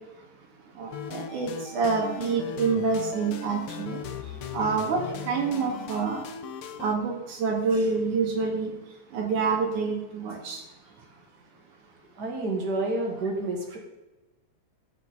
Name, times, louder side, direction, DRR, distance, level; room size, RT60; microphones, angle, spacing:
voice 1, 0.8-4.0 4.5-5.0 5.3-6.2 6.8-8.7 9.1-10.6, right 4 dB, 85° right, 0 dB, 3.4 m, -27 dB
sound 1, 0.9-7.0, left 6 dB, 65° left, 1.5 m, -38 dB
voice 2, 12.2-13.8, right 2 dB, 35° right, 1 dB, 2.7 m, -29 dB
15.5 x 7.2 x 5.5 m, 1.1 s
omnidirectional pair, 3.4 m